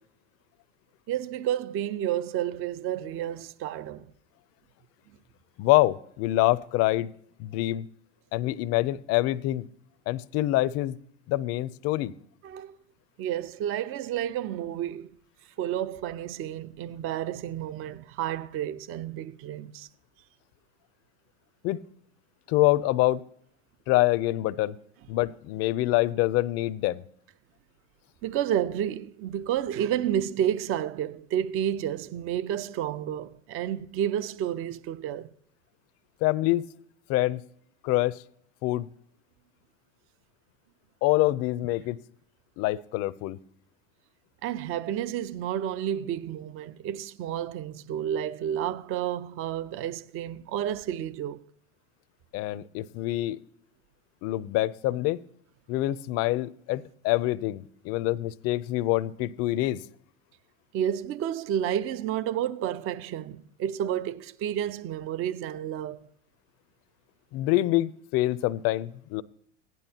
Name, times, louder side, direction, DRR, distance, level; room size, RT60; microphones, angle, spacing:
voice 1, 1.1-4.1 12.4-12.8 13.2-15.1 15.6-19.9 28.2-35.3 44.4-51.5 60.7-66.1, right 10 dB, 40° right, 0.6 m, -30 dB
voice 2, 5.6-7.1 7.4-7.9 8.3-9.7 10.1-11.0 11.3-12.1 21.6-21.8 22.5-23.2 23.9-24.8 25.1-27.0 36.2-36.6 37.1-37.4 37.8-38.2 38.6-38.9 41.0-42.0 42.6-43.4 52.3-53.4 54.2-55.2 55.7-59.8 67.3-69.2, left 17 dB, 45° left, 0.5 m, -25 dB
16.0 x 11.0 x 2.8 m
supercardioid pair, 115°, 34 cm